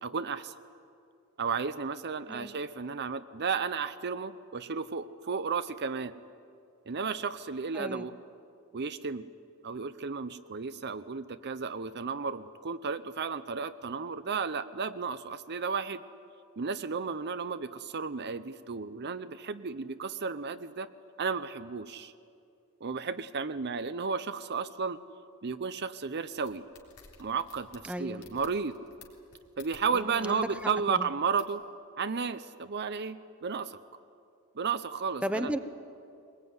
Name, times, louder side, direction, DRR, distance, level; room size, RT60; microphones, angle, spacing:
voice 1, 0.0-0.5 1.4-6.1 6.9-8.1 8.7-9.2 9.6-16.0 16.6-20.9 21.2-22.1 22.8-25.0 25.4-26.7 27.2-28.8 29.6-31.6 32.0-33.8 34.6-35.5, right 5 dB, 50° right, 11 dB, 0.7 m, -33 dB
voice 2, 7.7-8.1 27.9-28.2 29.9-30.4 30.9-31.1 35.2-35.6, right 1 dB, 5° right, 9 dB, 0.9 m, -34 dB
sound 1, 26.2-30.2 30.5-30.7 31.4-31.6, left 5 dB, 80° left, 3.7 m, -54 dB
22.5 x 20.5 x 9.6 m, 2.5 s
head